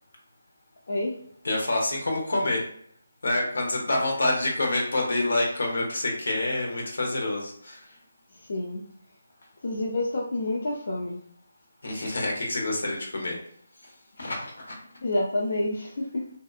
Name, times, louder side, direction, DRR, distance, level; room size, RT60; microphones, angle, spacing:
voice 1, 1.4-2.6 3.2-7.8 11.8-13.4 14.2-14.7, left 2 dB, 75° left, 0 dB, 1.2 m, -27 dB
voice 2, 8.5-8.8 9.6-11.2 14.2-14.3 15.0-16.2, left 1 dB, 55° left, -3 dB, 0.5 m, -28 dB
2.6 x 2.3 x 2.5 m, 0.63 s
hypercardioid pair, 170°, 0 cm